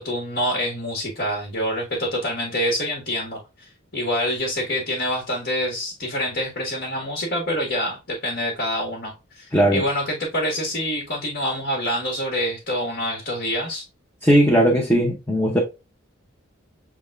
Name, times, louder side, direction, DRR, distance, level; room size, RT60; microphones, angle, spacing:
voice 1, 0.0-13.9, equal, 55° left, 1.4 m, -26 dB
voice 2, 9.5-9.8 14.2-15.6, equal, 10° left, 0.7 m, -18 dB
6.4 x 3.5 x 2.3 m
head